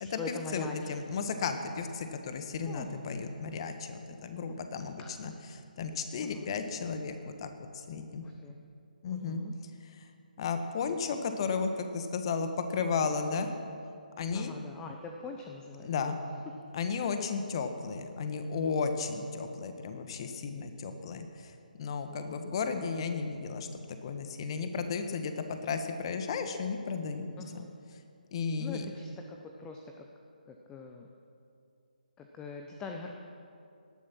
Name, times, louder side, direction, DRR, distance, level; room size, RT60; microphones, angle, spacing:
voice 1, 0.0-0.9 2.7-3.1 5.0-5.1 6.2-6.5 8.2-8.6 9.1-9.6 14.3-15.9 16.5-16.6 19.1-19.2 22.1-22.5 27.4-27.7 28.6-30.1 30.5-31.1 32.2-33.2, left 4 dB, 10° left, 3 dB, 0.9 m, -43 dB
voice 2, 0.5-5.3 5.8-8.2 9.0-9.4 10.4-13.5 14.2-14.5 15.8-16.2 16.7-21.5 21.8-27.3 28.3-28.8, left 5 dB, 35° left, 7 dB, 1.4 m, -34 dB
18.5 x 12.5 x 6.0 m, 2.5 s
figure-of-eight pair, 145°, 5 cm